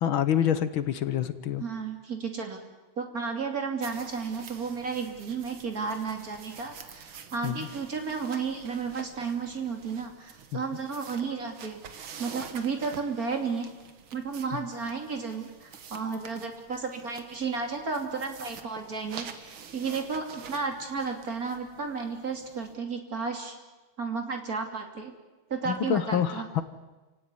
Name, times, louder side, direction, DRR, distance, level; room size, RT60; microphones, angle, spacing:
voice 1, 0.0-1.6 7.4-7.7 10.5-10.6 25.7-26.6, left 9 dB, 70° left, 12 dB, 1.9 m, -27 dB
voice 2, 1.6-2.6 3.0-13.7 14.1-23.6 24.0-25.1 25.5-26.5, right 5 dB, 40° right, 4 dB, 3.3 m, -33 dB
sound 1, 3.8-22.7, right 7 dB, 75° right, 2.3 m, -48 dB
29.5 x 17.0 x 9.7 m, 1.2 s
omnidirectional pair, 2.3 m